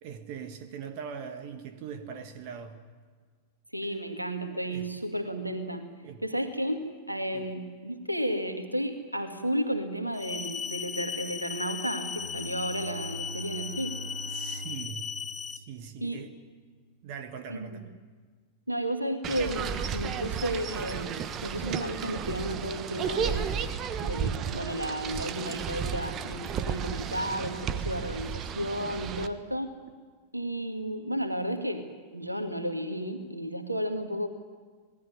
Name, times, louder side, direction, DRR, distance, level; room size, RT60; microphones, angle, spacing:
voice 1, 0.0-2.8 3.8-4.0 4.7-4.9 6.0-6.2 7.3-7.5 14.2-15.1 15.5-16.4 17.0-17.9, right 7 dB, 45° right, 1.7 m, -41 dB
voice 2, 3.7-5.8 6.2-14.0 16.0-16.2 17.5-17.7 18.7-23.6 24.0-29.8 30.3-31.9 32.1-34.3, equal, 85° right, 2.2 m, -33 dB
sound 1, 10.1-15.6, left 7 dB, 20° left, 1.0 m, -37 dB
Bowed string instrument, 12.0-16.5, right 1 dB, 85° left, 4.3 m, -43 dB
sound 2, 19.2-29.3, right 7 dB, 30° right, 1.3 m, -33 dB
27.0 x 19.0 x 9.9 m
figure-of-eight pair, 90°, 0 cm